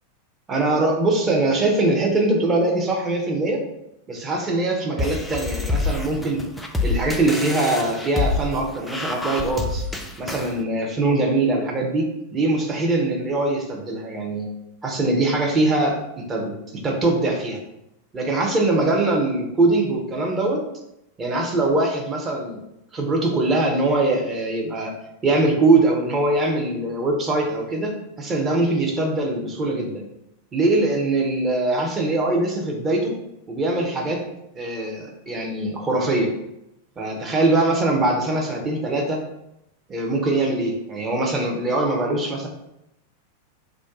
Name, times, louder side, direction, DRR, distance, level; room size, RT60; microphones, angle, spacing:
voice 1, 0.5-3.6 4.1-6.4 6.8-9.8 10.2-14.5 14.8-17.6 18.1-20.6 21.2-22.6 22.9-24.9 25.2-30.0 30.5-33.1 33.5-34.2 34.6-36.3 37.0-39.2 39.9-42.5, right 2 dB, 20° right, 1 dB, 0.7 m, -22 dB
sound 1, 5.0-10.6, left 3 dB, 5° left, 0.3 m, -27 dB
2.5 x 2.2 x 3.6 m, 0.84 s
figure-of-eight pair, 90°, 0 cm